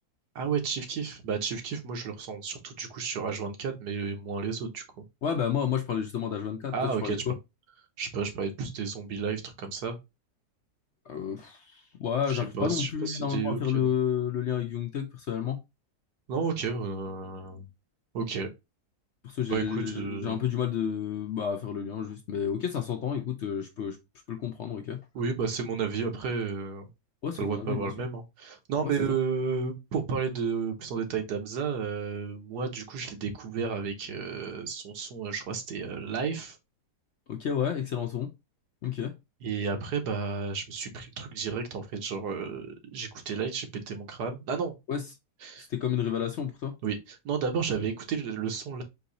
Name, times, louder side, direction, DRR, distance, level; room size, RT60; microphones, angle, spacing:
voice 1, 0.3-4.8 6.7-7.4 8.0-10.0 12.3-13.9 16.3-17.7 18.1-18.5 19.5-20.4 25.1-26.9 27.4-36.6 39.4-44.7 45.4-45.7 46.8-48.8, right 5 dB, 80° right, 1.6 m, -32 dB
voice 2, 5.2-6.7 7.0-7.3 11.1-15.6 19.2-24.0 24.3-25.0 27.2-27.9 28.8-29.2 37.3-38.3 38.8-39.1 44.9-45.0 45.6-46.7, left 8 dB, 60° left, 0.7 m, -30 dB
4.6 x 2.7 x 3.9 m
omnidirectional pair, 1.7 m